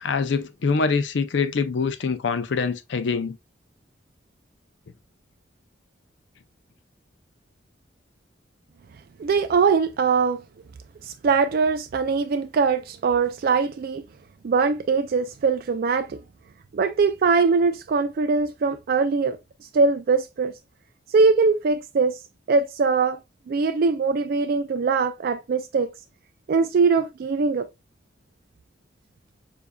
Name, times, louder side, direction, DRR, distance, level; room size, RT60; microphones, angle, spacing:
voice 1, 0.0-3.4, left 5 dB, 70° left, 0.5 m, -24 dB
voice 2, 9.2-10.4 11.0-14.0 14.4-16.2 16.7-19.4 19.7-20.5 21.1-22.2 22.5-23.2 23.5-25.9 26.5-27.7, right 4 dB, 55° right, 0.3 m, -22 dB
6.9 x 2.5 x 2.2 m
head